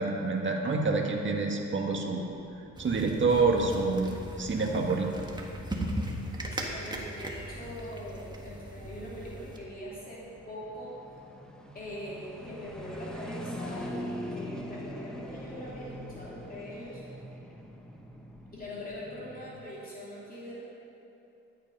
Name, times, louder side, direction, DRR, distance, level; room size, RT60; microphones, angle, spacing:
voice 1, 0.0-2.2 2.8-4.1 4.4-5.1, right 3 dB, 40° right, 1 dB, 1.9 m, -27 dB
sound 1, 1.3-19.6, equal, ahead, 1.2 m, -44 dB
sound 2, 2.8-9.6, right 1 dB, 15° right, 1.7 m, -38 dB
voice 2, 6.4-11.0 11.7-17.0 18.5-20.6, equal, 30° left, -6 dB, 2.8 m, -42 dB
11.5 x 10.5 x 5.5 m, 2.9 s
cardioid pair, 90°, 30 cm